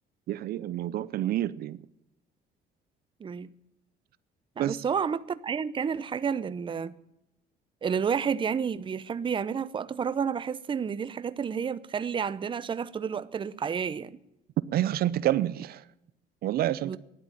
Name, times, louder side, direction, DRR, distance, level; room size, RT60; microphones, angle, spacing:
voice 1, 0.3-1.8 4.6-4.8 14.7-15.8 16.4-17.0, right 13 dB, 65° right, 0.6 m, -28 dB
voice 2, 3.2-3.5 4.6-6.9 7.8-14.2 16.8-17.0, right 6 dB, 30° right, 0.7 m, -30 dB
13.0 x 10.5 x 9.1 m
cardioid pair, 110°, 17 cm